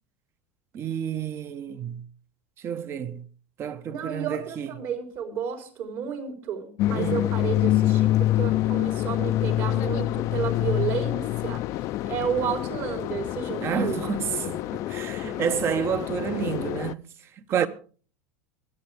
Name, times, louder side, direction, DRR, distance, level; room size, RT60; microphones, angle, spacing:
voice 1, 0.7-2.1 2.6-3.3 3.6-4.7 6.9-7.2 13.6-17.0 17.4-17.7, right 8 dB, 35° right, 1.1 m, -29 dB
voice 2, 3.9-14.1 17.5-17.7, right 7 dB, 55° right, 4.1 m, -32 dB
sound 1, 6.8-16.9, left 14 dB, 50° left, 0.6 m, -26 dB
24.5 x 8.7 x 3.5 m
supercardioid pair, 115°, 7 cm